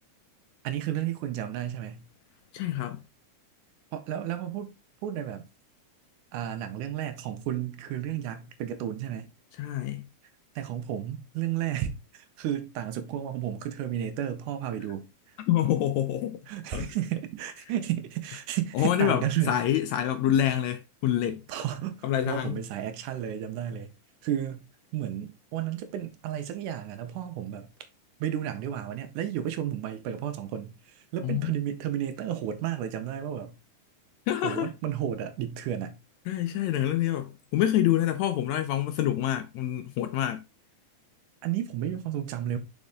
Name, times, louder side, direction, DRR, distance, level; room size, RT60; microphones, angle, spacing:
voice 1, 0.6-2.1 3.9-4.7 5.0-5.5 6.3-9.3 10.6-15.4 16.5-19.6 21.5-23.9 24.2-24.7 24.9-27.7 28.2-33.6 34.4-36.0 41.4-42.6, right 11 dB, 80° right, 2.3 m, -32 dB
voice 2, 2.5-3.0 9.6-10.1 15.5-16.4 16.7-16.9 18.7-21.4 22.0-22.6 31.2-31.5 34.3-34.7 36.3-40.4, left 11 dB, 80° left, 1.7 m, -26 dB
5.4 x 5.3 x 3.6 m
omnidirectional pair, 3.6 m